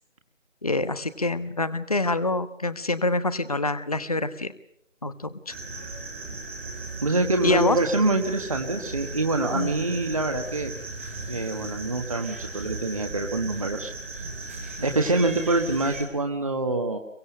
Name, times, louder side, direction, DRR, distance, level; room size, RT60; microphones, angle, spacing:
voice 1, 0.6-4.5 5.0-5.5 7.4-7.8 9.5-9.7 14.8-14.9, left 2 dB, 30° left, 15 dB, 1.0 m, -26 dB
sound 1, 5.5-16.1, right 3 dB, 10° right, 1.8 m, -37 dB
voice 2, 7.0-10.7 11.3-14.3 14.8-17.0, right 2 dB, 25° right, 4 dB, 1.5 m, -25 dB
23.5 x 23.0 x 8.0 m, 0.68 s
figure-of-eight pair, 160°, 38 cm